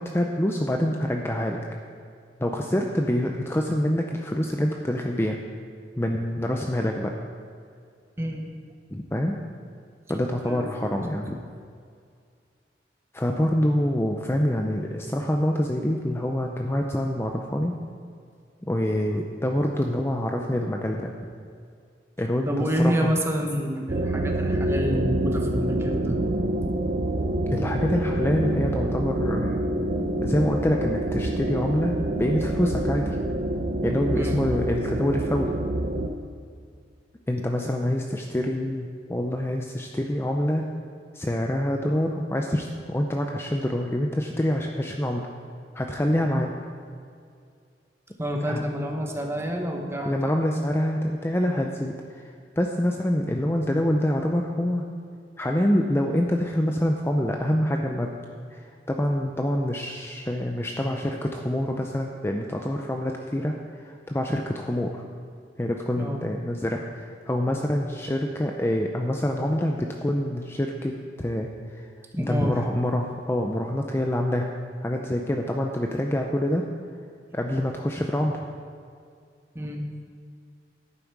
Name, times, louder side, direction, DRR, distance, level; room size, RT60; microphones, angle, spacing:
voice 1, 0.0-1.6 2.4-5.4 6.0-7.1 8.9-9.4 10.1-11.4 13.1-17.7 18.6-21.1 22.2-23.1 27.5-29.6 30.2-33.1 33.8-35.5 37.3-40.6 41.1-45.3 45.7-46.5 48.5-48.6 50.0-51.9 52.6-54.8 55.4-58.1 58.5-63.5 63.8-65.0 65.6-71.5 71.8-71.9 72.2-74.5 74.8-76.6 77.3-78.4, left 1 dB, 15° left, 2 dB, 0.5 m, -26 dB
voice 2, 10.4-10.9 22.5-26.2 34.2-34.4 48.2-50.2 66.0-66.2 72.1-72.6 79.5-79.8, equal, 15° right, 1 dB, 1.1 m, -28 dB
sound 1, 23.9-36.1, right 1 dB, 50° right, 0.7 m, -27 dB
11.0 x 8.9 x 4.7 m, 2.2 s
head